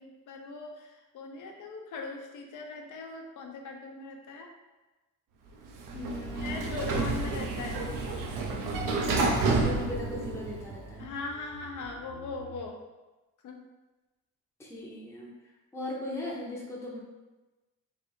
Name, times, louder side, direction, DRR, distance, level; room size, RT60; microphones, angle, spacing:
voice 1, 0.0-4.5 6.4-7.9 11.0-12.8 13.4-13.7, left 3 dB, 70° left, 2 dB, 0.7 m, -40 dB
Sliding door, 5.7-10.9, right 3 dB, 85° right, 0.7 m, -30 dB
voice 2, 5.9-6.7 9.0-11.1 14.6-15.3 15.7-17.0, left 1 dB, 10° left, -4 dB, 0.7 m, -38 dB
sound 1, 5.9-12.6, right 3 dB, 55° right, 0.8 m, -49 dB
3.3 x 2.6 x 4.3 m, 1.1 s
cardioid pair, 130°, 31 cm